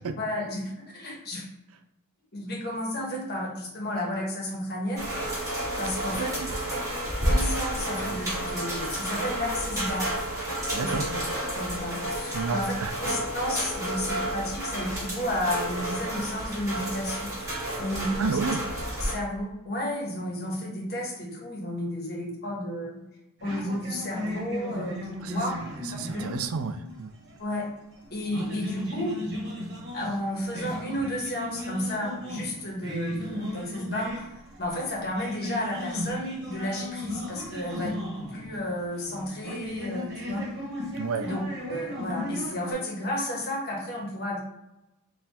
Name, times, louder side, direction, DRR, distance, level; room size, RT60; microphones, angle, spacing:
voice 1, 0.2-1.4 2.3-5.1 5.8-6.3 7.2-10.2 10.8-11.1 11.5-12.7 13.0-18.4 19.0-23.0 23.4-25.6 27.4-27.7 28.1-29.1 29.9-40.4 41.2-41.4 41.7-44.4, left 1 dB, 45° left, -2 dB, 1.3 m, -32 dB
sound 1, 5.0-19.1, right 1 dB, 15° right, 1.6 m, -31 dB
voice 2, 6.1-6.5 10.7-11.1 12.3-12.9 18.2-18.6 25.2-25.4 25.8-27.1 41.0-41.3, right 5 dB, 80° right, 8 dB, 0.4 m, -31 dB
sound 2, 23.4-27.7 28.0-42.7, left 1 dB, 50° right, 1.2 m, -36 dB
4.1 x 2.6 x 4.2 m, 0.92 s
head